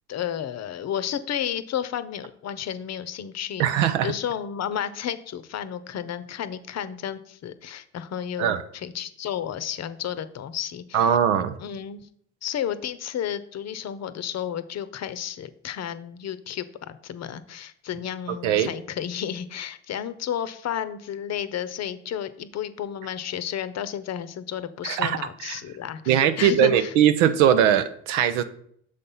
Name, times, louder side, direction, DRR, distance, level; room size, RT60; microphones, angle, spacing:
voice 1, 0.1-11.2 11.6-12.1 12.4-26.9, left 9 dB, 45° left, 14 dB, 0.7 m, -32 dB
voice 2, 3.6-4.1 8.4-8.6 10.9-11.5 18.4-18.7 24.8-25.6 26.1-28.4, right 9 dB, 90° right, 10 dB, 0.6 m, -21 dB
6.5 x 4.2 x 5.4 m, 0.65 s
supercardioid pair, 65°, 35 cm